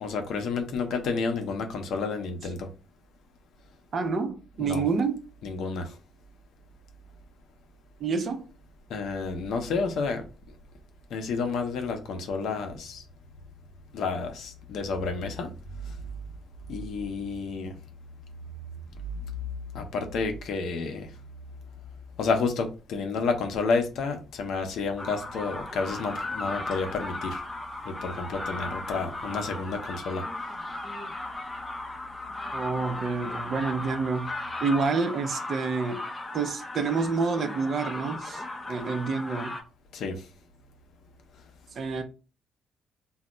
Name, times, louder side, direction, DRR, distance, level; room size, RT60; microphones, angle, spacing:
voice 1, 0.0-2.7 4.6-4.9 5.4-6.0 8.9-10.2 11.1-13.0 13.9-15.5 15.8-16.0 16.7-17.8 19.7-21.1 22.2-27.4 27.8-30.2 39.9-40.3, left 4 dB, 75° left, 0.6 m, -30 dB
voice 2, 3.9-5.2 8.0-8.5 32.5-34.3 34.6-36.0 36.3-39.6 41.7-42.0, right 4 dB, 55° right, 0.5 m, -28 dB
sound 1, 25.0-39.6, left 2 dB, 15° left, 0.5 m, -36 dB
2.2 x 2.0 x 3.7 m
cardioid pair, 90°, 0 cm